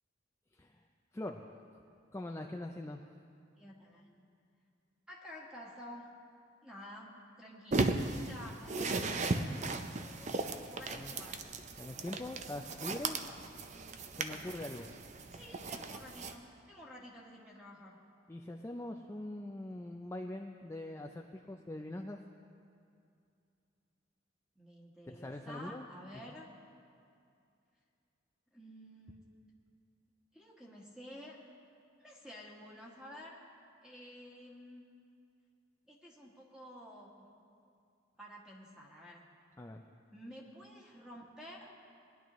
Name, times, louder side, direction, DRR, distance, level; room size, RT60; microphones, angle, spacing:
voice 1, 1.1-1.5 2.1-3.0 10.9-11.1 11.8-13.2 14.2-14.9 18.3-22.2 25.1-25.9 39.6-39.8, left 1 dB, 15° left, 2 dB, 0.4 m, -43 dB
voice 2, 3.6-4.3 5.1-6.1 6.6-11.4 15.3-18.0 24.5-26.5 28.5-29.3 30.3-31.4 32.0-33.4 33.8-34.8 35.9-37.3 38.2-39.2 40.1-41.7, equal, 5° right, -4 dB, 1.5 m, -51 dB
sound 1, 7.7-16.4, right 3 dB, 40° right, 0.5 m, -37 dB
19.5 x 10.5 x 3.1 m, 2.4 s
head